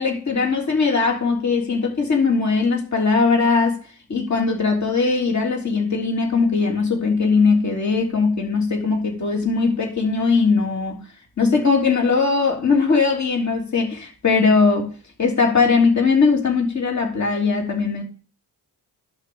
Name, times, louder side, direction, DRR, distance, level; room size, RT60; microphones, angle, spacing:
voice 1, 0.0-3.8 4.1-11.0 11.4-14.9 15.2-18.0, left 4 dB, 45° left, 3.4 m, -20 dB
11.5 x 6.0 x 4.9 m
cardioid pair, 90°, 39 cm